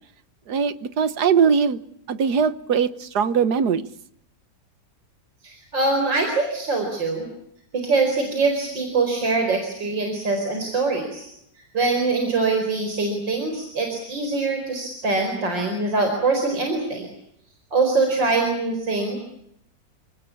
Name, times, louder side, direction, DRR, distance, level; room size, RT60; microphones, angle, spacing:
voice 1, 0.5-1.8 2.1-3.9, right 6 dB, 65° right, 14 dB, 1.7 m, -21 dB
voice 2, 5.4-7.3 7.7-11.3 11.7-17.1 17.7-19.2, right 3 dB, 80° right, 4 dB, 5.4 m, -23 dB
29.5 x 19.5 x 8.6 m, 0.75 s
omnidirectional pair, 2.0 m